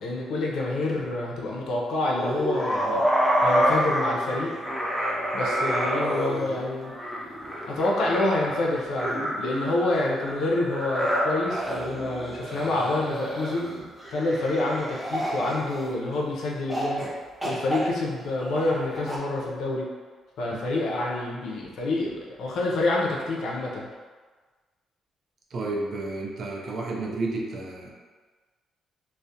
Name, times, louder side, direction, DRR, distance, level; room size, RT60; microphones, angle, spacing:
voice 1, 0.0-3.0 3.4-4.5 5.3-6.9 7.7-13.7 14.1-17.1 17.4-19.9 20.4-23.9, left 2 dB, 75° left, -2 dB, 0.5 m, -27 dB
sound 1, 2.2-16.2 16.7-17.1 17.4-19.2, equal, ahead, 0.5 m, -28 dB
voice 2, 25.5-27.9, right 2 dB, 55° right, -2 dB, 0.5 m, -31 dB
2.3 x 2.0 x 2.6 m, 1.4 s
cardioid pair, 90°, 0 cm